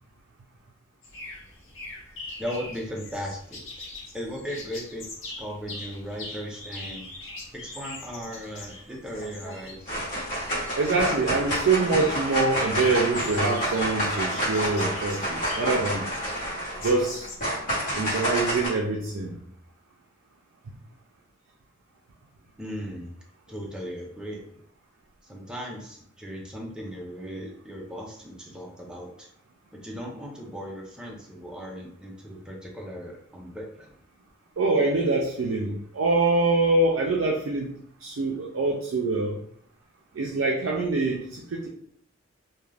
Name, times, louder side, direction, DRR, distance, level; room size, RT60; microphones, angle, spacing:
sound 1, 1.0-17.4, left 2 dB, 65° left, 0.9 m, -43 dB
voice 1, 2.4-3.9 4.1-7.1 7.5-10.1 22.6-23.2 23.5-24.6 25.2-29.3 29.7-33.9, equal, 5° right, -2 dB, 0.5 m, -37 dB
sound 2, 9.2-9.5 9.9-18.7, equal, 40° left, 1.1 m, -29 dB
voice 2, 10.8-16.0 16.8-17.3 17.9-19.3 34.6-37.7 38.0-39.4 40.1-41.7, right 3 dB, 65° right, -1 dB, 0.4 m, -25 dB
2.4 x 2.2 x 3.2 m, 0.64 s
head